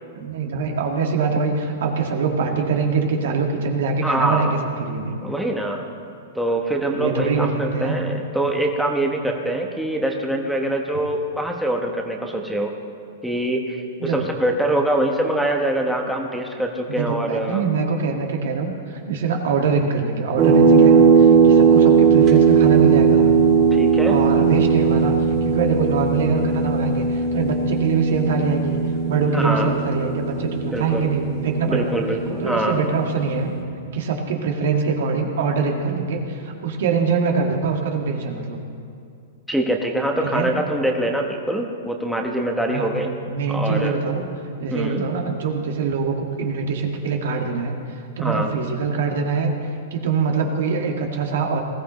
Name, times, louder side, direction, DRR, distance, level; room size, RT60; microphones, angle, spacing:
voice 1, 0.2-5.2 6.9-8.0 14.0-14.2 16.9-23.3 24.1-25.1 25.4-28.8 29.1-31.9 32.4-33.5 33.9-38.6 40.2-40.5 42.7-42.9 43.3-44.3 44.6-47.7 48.2-49.5 49.9-51.6, right 5 dB, 70° right, 2 dB, 1.8 m, -23 dB
voice 2, 4.0-4.5 5.2-5.8 6.3-12.7 13.2-17.6 23.7-24.2 29.3-29.7 30.6-31.1 31.7-32.8 39.5-43.1 43.5-43.9 44.7-45.0 48.2-48.5, right 1 dB, ahead, 0 dB, 1.0 m, -24 dB
sound 1, 20.4-33.5, right 6 dB, 35° right, 2.8 m, -18 dB
19.5 x 14.5 x 3.1 m, 2.4 s
hypercardioid pair, 140°, 0 cm